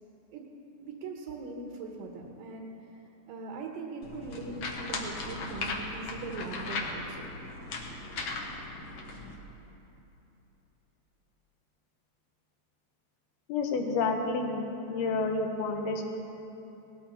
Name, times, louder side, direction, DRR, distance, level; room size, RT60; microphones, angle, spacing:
voice 1, 0.8-2.9 3.3-7.4 7.9-8.0, right 3 dB, 70° right, 1 dB, 2.6 m, -41 dB
sound 1, 4.0-9.3, left 3 dB, 60° left, 1.6 m, -37 dB
voice 2, 13.5-16.1, left 3 dB, 80° left, 2 dB, 3.0 m, -30 dB
19.0 x 14.5 x 4.3 m, 2.9 s
omnidirectional pair, 4.5 m